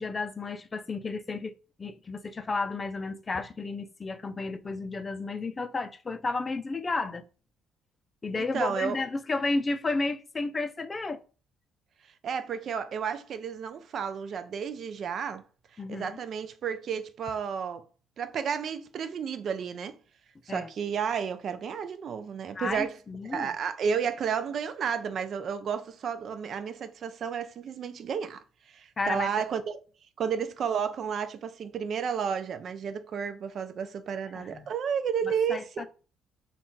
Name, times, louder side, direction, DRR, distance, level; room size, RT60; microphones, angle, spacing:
voice 1, 0.0-1.5 1.8-7.3 8.2-11.2 15.8-16.2 20.5-20.7 22.6-23.5 29.0-29.3 34.3-34.7 35.2-35.9, left 3 dB, 30° left, 0.4 m, -32 dB
voice 2, 8.3-9.0 12.2-15.4 15.7-17.9 18.2-20.0 20.5-22.9 23.2-29.8 30.2-35.9, right 7 dB, 55° right, 0.4 m, -32 dB
2.4 x 2.3 x 3.8 m
hypercardioid pair, 60°, 0 cm